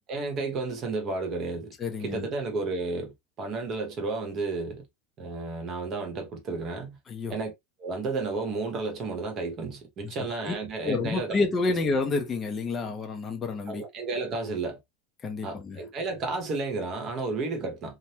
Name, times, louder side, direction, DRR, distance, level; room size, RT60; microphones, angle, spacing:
voice 1, 0.1-1.7 2.0-4.9 5.2-7.0 7.3-7.5 7.8-11.4 13.7-14.8 15.4-18.0, right 3 dB, 25° right, 0.9 m, -32 dB
voice 2, 1.8-2.2 7.1-7.3 10.4-10.5 10.8-13.8 15.2-15.8, left 3 dB, 15° left, 0.5 m, -29 dB
3.3 x 2.1 x 2.7 m
supercardioid pair, 175°, 0 cm